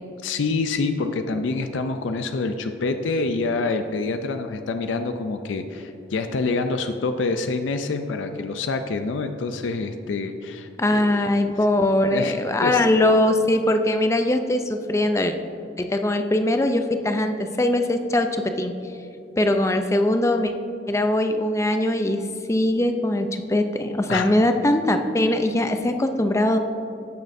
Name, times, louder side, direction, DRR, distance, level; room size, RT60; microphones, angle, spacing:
voice 1, 0.2-11.5 12.1-12.4 12.6-12.9 24.1-24.3, left 3 dB, 85° left, 8 dB, 0.4 m, -26 dB
voice 2, 10.8-15.4 15.8-18.7 19.4-20.5 20.9-26.6, left 1 dB, 15° left, 7 dB, 0.4 m, -21 dB
15.0 x 6.4 x 2.6 m, 2.7 s
head